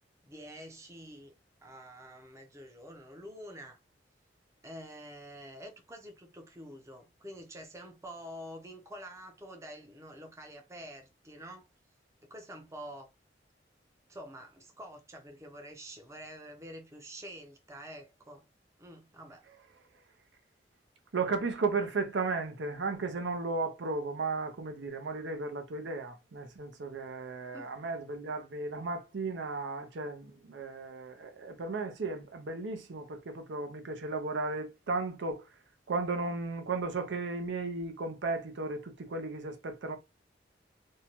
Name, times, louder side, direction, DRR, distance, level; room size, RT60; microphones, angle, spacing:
voice 1, 0.2-1.3 1.6-3.8 4.6-11.7 12.2-13.1 14.1-18.4 18.8-19.5 27.5-27.7, equal, 15° right, 0.5 m, -47 dB
voice 2, 21.1-35.5 35.9-40.0, right 3 dB, 85° right, 0.6 m, -35 dB
2.6 x 2.2 x 2.9 m
head